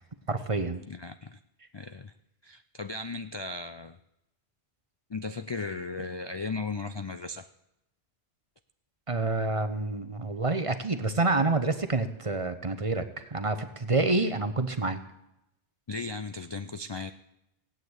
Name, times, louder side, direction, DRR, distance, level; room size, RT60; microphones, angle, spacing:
voice 1, 0.3-0.8 9.1-15.0, right 3 dB, 30° right, 10 dB, 0.9 m, -28 dB
voice 2, 0.9-1.4 1.7-2.1 2.4-4.0 5.1-7.5 15.9-17.1, left 3 dB, 40° left, 10 dB, 0.4 m, -36 dB
16.5 x 9.0 x 8.1 m, 0.86 s
omnidirectional pair, 1.1 m